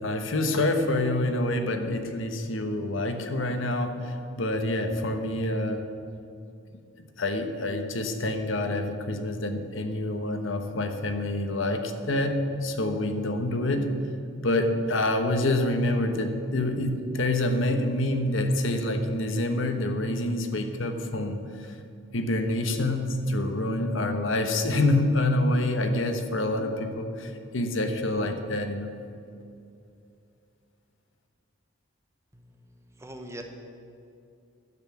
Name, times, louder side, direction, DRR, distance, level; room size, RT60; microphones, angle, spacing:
voice 1, 0.0-5.9 7.2-13.9 14.4-21.7 22.1-28.9, left 1 dB, 70° left, 6 dB, 1.1 m, -27 dB
voice 2, 32.3-33.4, right 1 dB, 15° right, 4 dB, 0.9 m, -43 dB
11.0 x 8.1 x 7.1 m, 2.5 s
head